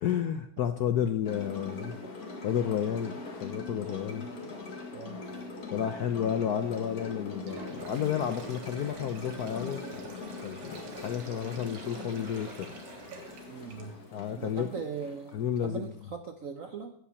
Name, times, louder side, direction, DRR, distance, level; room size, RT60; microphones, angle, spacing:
voice 1, 0.0-2.0 2.4-3.1 3.4-4.3 5.7-10.1 10.4-12.7 14.1-14.7 15.3-15.9, left 9 dB, 70° left, 8 dB, 0.9 m, -31 dB
sound 1, 1.2-16.0, left 3 dB, 45° left, 2.3 m, -42 dB
voice 2, 4.9-5.3 13.5-14.0 14.4-16.9, right 6 dB, 60° right, 6 dB, 0.9 m, -40 dB
Sink (filling or washing), 7.3-14.2, right 4 dB, 85° right, 2.4 m, -48 dB
15.0 x 5.7 x 6.9 m, 0.70 s
omnidirectional pair, 2.3 m